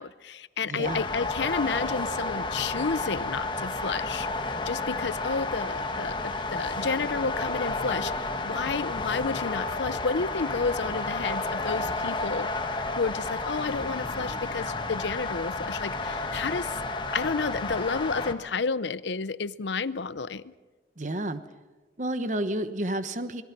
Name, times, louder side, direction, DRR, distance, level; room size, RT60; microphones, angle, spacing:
voice 1, 0.0-4.3 4.6-12.5 13.0-16.8 17.1-20.5, left 4 dB, 80° left, 17 dB, 0.7 m, -31 dB
voice 2, 0.6-1.0 21.0-21.4 22.0-23.4, right 1 dB, 45° right, 11 dB, 1.1 m, -30 dB
sound 1, 0.8-18.3, left 3 dB, 25° left, 1.4 m, -31 dB
sound 2, 11.4-12.6 13.5-16.7 17.3-17.4, left 1 dB, 45° left, 2.9 m, -47 dB
27.0 x 21.0 x 6.0 m, 1.3 s
head